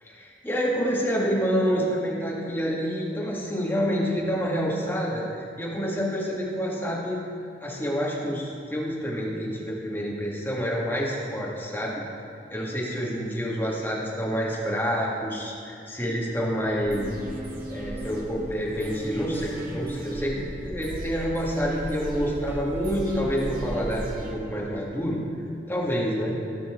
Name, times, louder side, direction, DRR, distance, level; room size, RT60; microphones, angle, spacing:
voice 1, 0.0-7.2 7.6-11.9 12.5-17.2 17.7-25.2 25.7-26.3, equal, 10° left, -5 dB, 1.8 m, -28 dB
sound 1, 16.7-24.1, equal, 15° right, 0.6 m, -38 dB
sound 2, 16.9-24.9 25.2-25.3, right 2 dB, 50° right, 1.4 m, -39 dB
17.5 x 5.9 x 3.7 m, 2.5 s
head